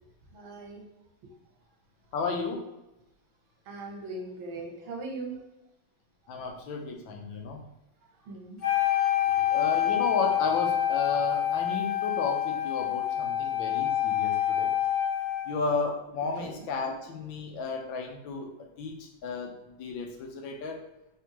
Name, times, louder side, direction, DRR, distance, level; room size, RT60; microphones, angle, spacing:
voice 1, 0.3-0.9 1.2-1.3 3.6-5.4 8.2-8.6 9.2-9.5 16.4-16.7, right 3 dB, 90° right, 1 dB, 1.7 m, -40 dB
voice 2, 2.1-2.7 6.3-7.6 9.5-14.7 15.4-18.5 18.8-20.8, left 4 dB, 85° left, 2 dB, 1.5 m, -33 dB
Wind instrument woodwind instrument, 8.6-15.6, left 12 dB, 50° left, 1.7 m, -27 dB
3.6 x 3.5 x 2.8 m, 0.93 s
omnidirectional pair, 2.1 m